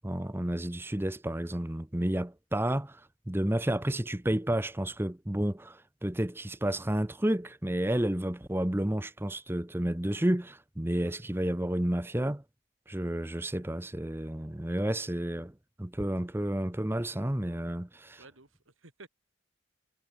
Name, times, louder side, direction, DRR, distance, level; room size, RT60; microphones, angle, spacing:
voice 1, 0.0-12.4 12.9-18.2, right 1 dB, 10° right, 0.7 m, -31 dB
voice 2, 14.8-15.2 18.2-19.1, right 3 dB, 90° right, 3.7 m, -55 dB
head